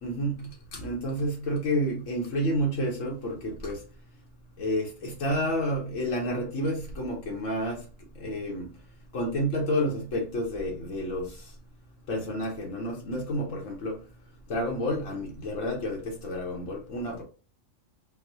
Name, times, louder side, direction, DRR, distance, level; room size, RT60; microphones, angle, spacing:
voice 1, 0.0-3.8 4.6-7.8 8.2-8.7 9.1-11.3 12.1-14.0 14.5-17.2, equal, 85° left, 1.2 m, -30 dB
4.4 x 2.1 x 2.7 m
omnidirectional pair, 1.3 m